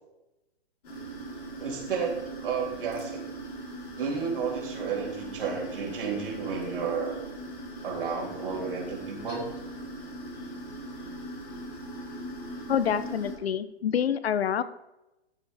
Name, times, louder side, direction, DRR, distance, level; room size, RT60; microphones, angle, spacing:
sound 1, 0.8-13.3, right 1 dB, 40° left, 3.9 m, -40 dB
voice 1, 1.6-3.2 4.0-7.2 7.8-9.5, right 5 dB, 60° right, -1 dB, 3.3 m, -32 dB
voice 2, 12.7-14.6, left 8 dB, 70° left, 14 dB, 0.8 m, -27 dB
13.5 x 7.1 x 3.5 m, 0.96 s
hypercardioid pair, 170°, 32 cm